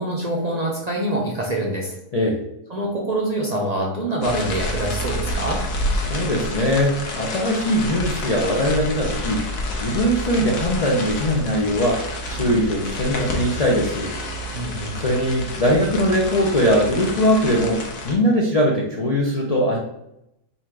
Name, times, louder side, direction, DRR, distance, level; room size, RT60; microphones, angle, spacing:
voice 1, 0.0-1.9 2.7-5.6 14.5-15.0, right 1 dB, 40° right, -2 dB, 0.6 m, -25 dB
sound 1, 4.2-18.1, left 1 dB, 85° left, 1.3 m, -29 dB
voice 2, 6.1-9.4 9.8-14.1 15.0-19.8, equal, 45° left, -3 dB, 0.5 m, -21 dB
4.1 x 2.5 x 4.4 m, 0.83 s
omnidirectional pair, 1.4 m